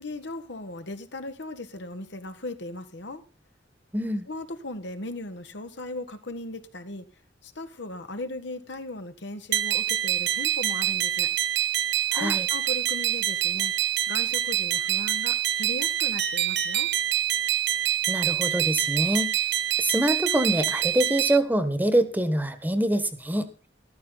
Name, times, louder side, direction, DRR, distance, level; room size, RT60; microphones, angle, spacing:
voice 1, 0.0-3.2 4.3-7.0 7.4-11.3 12.2-13.7 14.1-16.9, left 2 dB, 70° left, 1.5 m, -37 dB
voice 2, 3.9-4.2 12.1-12.5 18.1-19.3 19.8-23.5, right 1 dB, 10° right, 1.4 m, -25 dB
sound 1, 9.5-21.4, right 11 dB, 65° right, 1.0 m, -26 dB
14.0 x 13.0 x 4.0 m
head